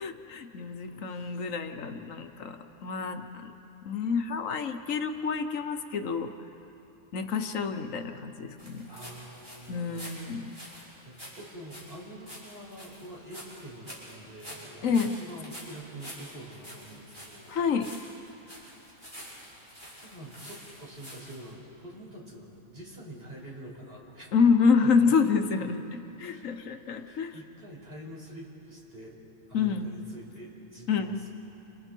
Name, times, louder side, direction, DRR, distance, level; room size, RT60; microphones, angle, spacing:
voice 1, 0.0-3.5 3.8-6.3 7.1-8.9 9.7-10.5 14.8-15.2 17.5-17.9 24.3-27.3 29.5-29.9 30.9-31.2, left 5 dB, 75° left, 7 dB, 1.4 m, -28 dB
voice 2, 1.0-1.4 8.9-10.2 10.6-10.8 11.0-17.5 18.5-18.8 20.0-24.3 24.8-24.9 26.3-26.5 27.0-29.2 29.5-31.3, right 1 dB, 45° right, -3 dB, 5.4 m, -46 dB
sound 1, 8.6-21.5, equal, 20° right, 7.5 m, -47 dB
29.5 x 29.0 x 4.5 m, 3.0 s
omnidirectional pair, 1.4 m